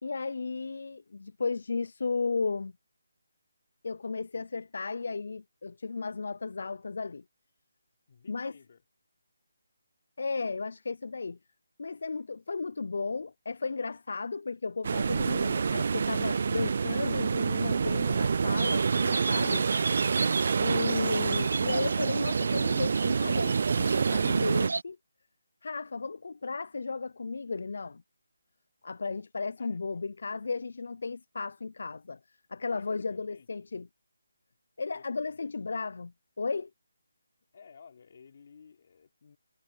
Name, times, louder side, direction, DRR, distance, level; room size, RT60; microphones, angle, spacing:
voice 1, 0.0-2.7 3.8-7.2 8.3-8.5 10.2-11.4 11.8-19.7 20.6-25.0 25.6-28.0 28.8-32.2 32.5-33.9 34.8-36.7, left 4 dB, 60° left, 0.4 m, -34 dB
voice 2, 8.1-8.8 15.1-15.6 29.6-30.1 32.7-33.7 34.9-35.5 37.5-39.4, left 6 dB, 40° left, 4.3 m, -56 dB
sound 1, 14.8-24.7, right 5 dB, 45° right, 0.3 m, -27 dB
sound 2, 18.6-24.8, right 3 dB, 70° right, 1.0 m, -35 dB
hypercardioid pair, 170°, 0 cm